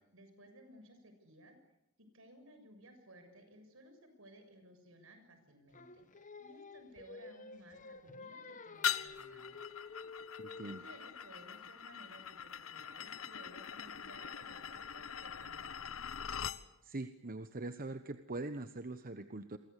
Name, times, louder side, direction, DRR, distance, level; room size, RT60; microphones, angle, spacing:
voice 1, 0.1-1.5 2.1-9.6 10.6-15.9, right 1 dB, 75° right, 7 dB, 6.9 m, -58 dB
Singing, 5.7-10.9, left 4 dB, 40° left, 1.4 m, -51 dB
sound 1, 8.8-16.6, left 8 dB, 85° left, 1.1 m, -42 dB
voice 2, 10.4-10.8 16.8-19.6, right 2 dB, 45° right, 10 dB, 1.1 m, -42 dB
29.0 x 23.5 x 8.4 m, 0.83 s
head